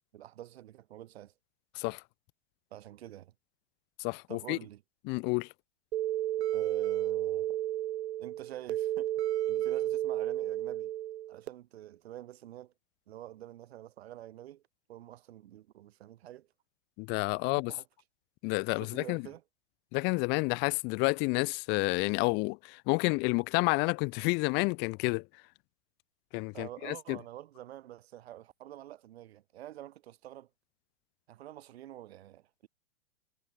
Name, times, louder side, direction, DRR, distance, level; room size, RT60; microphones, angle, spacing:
voice 1, 0.1-1.3 2.7-3.3 4.3-4.8 6.5-7.6 8.2-9.1 9.5-10.9 11.3-12.7 13.1-14.6 14.9-16.5 17.7-17.8 18.8-19.4 26.5-30.5 31.3-32.7, right 13 dB, 70° right, 6.9 m, -47 dB
voice 2, 4.0-4.6 5.1-5.5 17.0-17.7 18.4-19.2 19.9-25.2 26.3-27.2, left 29 dB, 35° left, 0.6 m, -30 dB
sound 1, 5.9-11.5, right 13 dB, 85° right, 0.6 m, -32 dB
hypercardioid pair, 125°, 33 cm